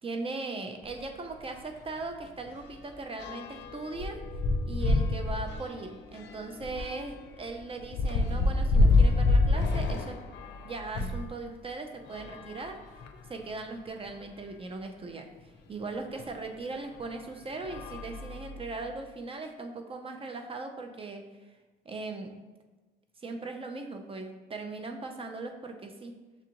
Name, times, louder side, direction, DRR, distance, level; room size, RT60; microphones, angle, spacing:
voice 1, 0.0-4.2 4.7-10.2 10.6-12.8 13.3-21.3 21.8-22.3 23.2-26.1, right 3 dB, 30° right, 5 dB, 0.6 m, -39 dB
sound 1, 0.8-1.0 1.4-1.6 1.8-11.3 12.0-13.4 14.1-14.2 14.4-14.5 16.2-16.3 16.9-17.2 17.6-18.9, left 2 dB, 60° left, 0.5 m, -28 dB
6.9 x 2.4 x 2.9 m, 1.2 s
cardioid pair, 90°, 20 cm